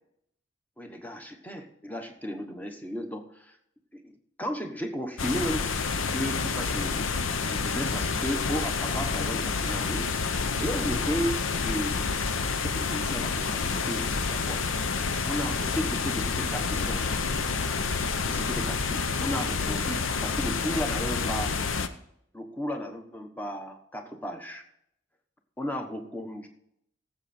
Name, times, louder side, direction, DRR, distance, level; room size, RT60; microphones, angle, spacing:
voice 1, 0.8-3.6 3.9-4.0 4.4-5.6 6.1-7.0 7.4-10.1 10.6-12.2 12.5-14.6 15.3-17.1 18.3-21.5 22.3-24.6 25.6-26.5, equal, 10° left, 5 dB, 1.1 m, -34 dB
sound 1, 5.2-21.9, left 4 dB, 80° left, 0.8 m, -28 dB
16.5 x 7.5 x 4.4 m, 0.74 s
head